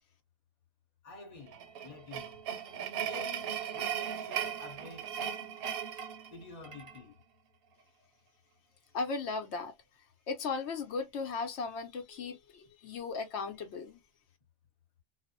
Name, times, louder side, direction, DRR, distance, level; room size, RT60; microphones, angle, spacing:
voice 1, 1.0-2.5 3.0-5.1 6.3-7.2, left 3 dB, 35° left, 0.9 m, -50 dB
sound 1, 1.5-7.0, right 9 dB, 65° right, 0.7 m, -37 dB
voice 2, 8.9-9.7 10.3-14.0, left 4 dB, 80° left, 0.9 m, -36 dB
2.5 x 2.0 x 2.8 m
omnidirectional pair, 1.2 m